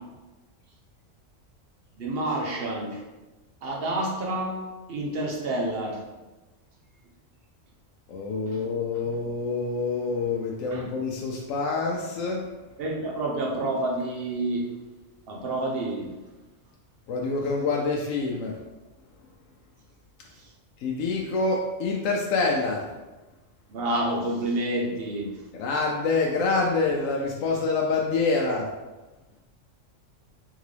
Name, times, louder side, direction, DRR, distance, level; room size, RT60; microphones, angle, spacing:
voice 1, 2.0-3.0 3.6-6.0 8.5-8.7 9.0-9.1 10.7-10.9 12.8-14.7 15.3-16.2 20.3-20.5 23.7-25.5, right 1 dB, 55° right, -1 dB, 0.9 m, -29 dB
voice 2, 8.1-12.5 17.1-18.6 20.8-22.9 25.5-28.7, left 3 dB, 85° left, -1 dB, 0.9 m, -26 dB
3.7 x 3.6 x 3.3 m, 1.1 s
omnidirectional pair, 1.3 m